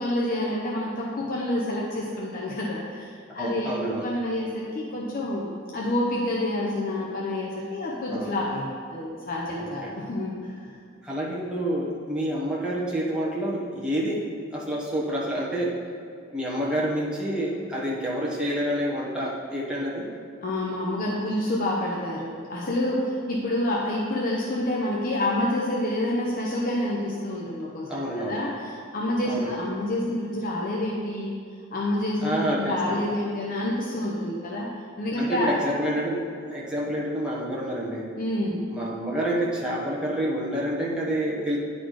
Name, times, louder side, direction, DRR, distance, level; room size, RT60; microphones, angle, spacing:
voice 1, 0.0-10.8 20.4-31.4 31.7-34.7 35.0-35.5 38.2-38.6, left 1 dB, 45° left, -4 dB, 0.7 m, -28 dB
voice 2, 3.4-4.1 8.1-8.3 9.5-10.0 11.0-14.2 14.5-15.7 16.3-20.1 27.9-28.4 29.2-29.5 32.2-33.0 35.2-38.1 38.7-41.6, right 1 dB, 5° right, -6 dB, 1.1 m, -28 dB
9.6 x 4.2 x 4.7 m, 2.4 s
head